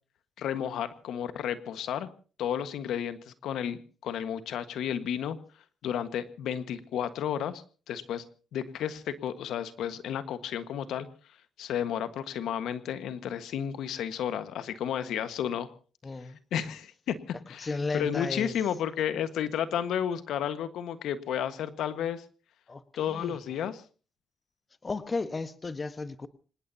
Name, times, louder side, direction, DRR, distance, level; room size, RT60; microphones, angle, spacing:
voice 1, 0.4-2.1 2.4-5.4 5.8-8.2 8.5-11.1 11.6-15.7 16.5-17.2 17.5-17.7 17.9-22.2 23.0-23.8, left 9 dB, 80° left, 11 dB, 1.5 m, -32 dB
voice 2, 16.0-16.4 17.6-18.6 22.7-23.4 24.8-26.3, left 3 dB, 30° left, 12 dB, 1.3 m, -34 dB
26.0 x 19.0 x 2.8 m, 0.38 s
cardioid pair, 90°, 0 cm